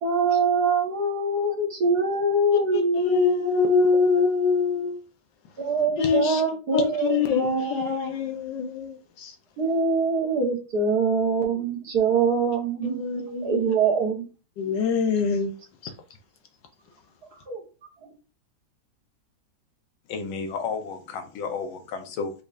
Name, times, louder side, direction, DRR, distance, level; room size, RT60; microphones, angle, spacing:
voice 1, 0.0-3.9 5.6-8.1 9.6-13.0 13.4-14.2 17.5-17.6, right 3 dB, 55° right, 1.7 m, -24 dB
voice 2, 2.5-5.0 6.0-6.4 6.7-9.3 12.8-13.7 14.6-15.5 15.8-15.9, left 5 dB, 70° left, 1.2 m, -24 dB
voice 3, 20.1-22.3, left 5 dB, 85° left, 1.6 m, -32 dB
5.3 x 3.8 x 2.5 m
omnidirectional pair, 2.2 m